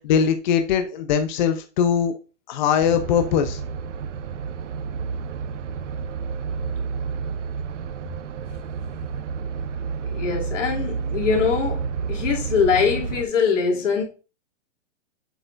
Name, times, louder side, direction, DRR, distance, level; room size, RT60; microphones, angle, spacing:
voice 1, 0.0-2.1 2.5-3.6, left 8 dB, 40° left, 0.6 m, -21 dB
sound 1, 2.8-13.2, right 6 dB, 80° right, 0.9 m, -30 dB
voice 2, 10.0-14.0, left 6 dB, 85° left, 2.7 m, -23 dB
7.7 x 6.6 x 2.5 m
hypercardioid pair, 165°, 36 cm